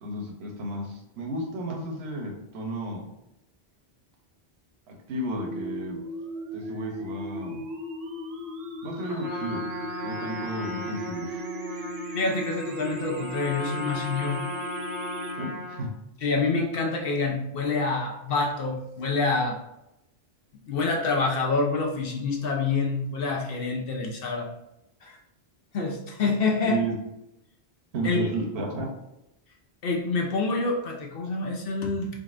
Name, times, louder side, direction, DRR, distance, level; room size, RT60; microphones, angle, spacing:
voice 1, 0.0-3.0 4.9-6.0 6.5-7.6 8.8-9.7 10.0-11.4 15.4-15.9 26.6-26.9 27.9-28.9, right 1 dB, 80° right, 2 dB, 1.0 m, -33 dB
sound 1, 5.3-15.3, right 1 dB, 55° right, 0.7 m, -37 dB
Trumpet, 9.0-15.9, left 1 dB, ahead, 1.0 m, -37 dB
voice 2, 12.1-14.4 16.2-19.6 20.7-24.5 25.0-25.2 25.7-26.8 28.0-28.3 29.8-32.1, left 3 dB, 65° left, 1 dB, 0.8 m, -27 dB
3.8 x 3.3 x 2.5 m, 0.86 s
omnidirectional pair, 1.1 m